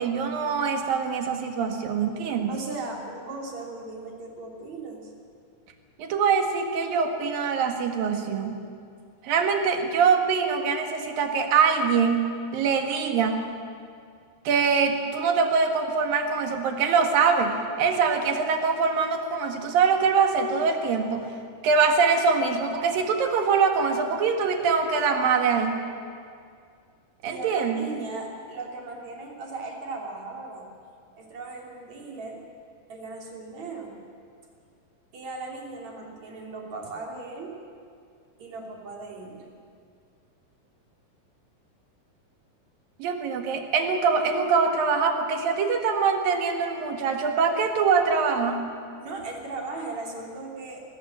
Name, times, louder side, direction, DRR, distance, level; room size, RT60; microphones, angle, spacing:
voice 1, 0.0-2.6 6.0-8.6 9.2-12.2 12.5-13.4 14.4-21.3 21.6-25.8 27.2-27.9 43.0-48.6, right 5 dB, 75° right, 5 dB, 3.4 m, -23 dB
voice 2, 2.5-5.1 27.3-30.7 31.1-32.4 32.9-33.9 35.1-37.6 38.4-39.6 49.0-50.8, right 3 dB, 50° right, 0 dB, 4.1 m, -37 dB
24.5 x 18.5 x 7.7 m, 2.3 s
omnidirectional pair, 4.1 m